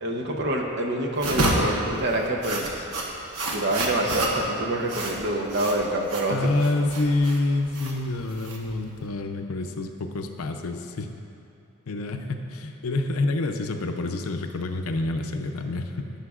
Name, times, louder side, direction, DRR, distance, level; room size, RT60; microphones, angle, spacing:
voice 1, 0.0-2.8 3.5-6.4, right 1 dB, 50° right, 1 dB, 0.8 m, -26 dB
sound 1, 1.2-9.1, right 1 dB, 85° right, 1.1 m, -29 dB
voice 2, 6.3-11.1 11.9-16.1, left 2 dB, 75° left, 5 dB, 0.6 m, -27 dB
15.5 x 5.6 x 2.4 m, 2.8 s
head